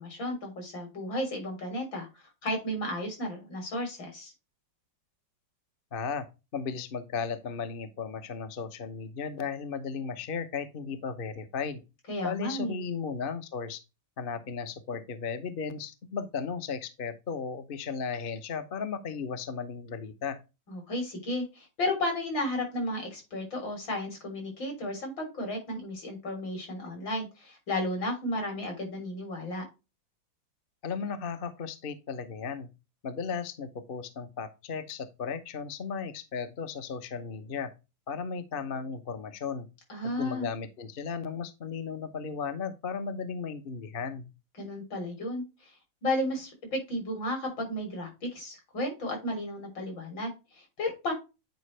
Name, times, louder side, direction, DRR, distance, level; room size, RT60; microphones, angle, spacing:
voice 1, 0.0-2.1 2.4-4.3 12.1-12.8 20.7-29.6 39.9-40.5 44.6-45.4 46.0-51.1, left 1 dB, 75° left, 4.5 m, -33 dB
voice 2, 5.9-6.3 6.5-11.8 12.2-13.8 14.2-20.4 30.8-32.7 33.0-37.7 38.1-39.7 40.0-44.3, left 5 dB, 45° left, 0.8 m, -35 dB
9.3 x 5.0 x 3.2 m
omnidirectional pair, 2.1 m